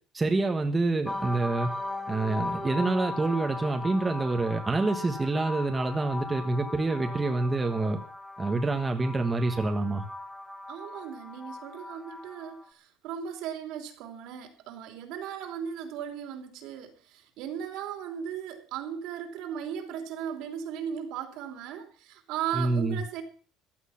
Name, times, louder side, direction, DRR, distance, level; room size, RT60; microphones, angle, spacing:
voice 1, 0.1-1.7 2.1-8.0 8.4-10.0 22.5-23.0, right 2 dB, 15° right, 5 dB, 1.4 m, -27 dB
sound 1, 1.0-12.6, left 2 dB, 5° left, 1.4 m, -38 dB
voice 2, 10.7-23.2, right 8 dB, 75° right, 6 dB, 3.3 m, -37 dB
15.0 x 11.0 x 5.8 m, 0.41 s
cardioid pair, 155°, 0 cm